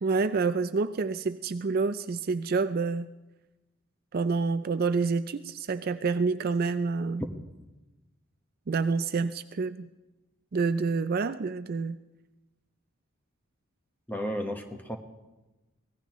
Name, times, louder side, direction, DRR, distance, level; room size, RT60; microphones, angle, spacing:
voice 1, 0.0-3.1 4.1-7.2 8.7-9.9 10.5-12.0, right 4 dB, 45° right, 11 dB, 0.4 m, -28 dB
voice 2, 14.1-15.0, equal, 10° left, 4 dB, 1.2 m, -33 dB
24.5 x 18.0 x 3.1 m, 1.1 s
head